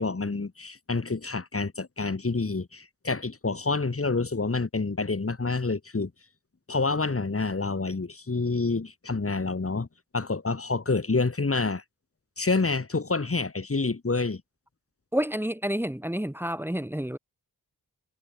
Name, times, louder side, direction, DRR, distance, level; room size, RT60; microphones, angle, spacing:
voice 1, 0.0-6.1 6.7-9.9 10.1-11.8 12.4-14.4, left 3 dB, 35° left, 5.6 m, -28 dB
voice 2, 15.1-17.2, equal, 5° right, 3.9 m, -29 dB
wide cardioid pair, 115°, 38 cm